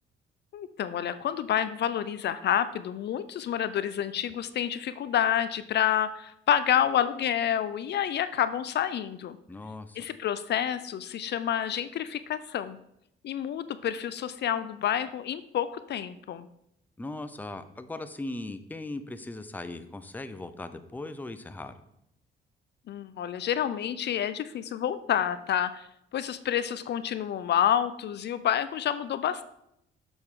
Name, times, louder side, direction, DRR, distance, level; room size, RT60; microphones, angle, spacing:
voice 1, 0.5-9.4 10.0-12.8 13.2-16.5 22.9-25.9 26.1-29.4, left 10 dB, 60° left, 13 dB, 0.4 m, -28 dB
voice 2, 9.5-10.1 17.0-21.7, left 2 dB, 10° left, 10 dB, 0.5 m, -38 dB
6.8 x 6.1 x 3.7 m, 0.78 s
cardioid pair, 90°, 20 cm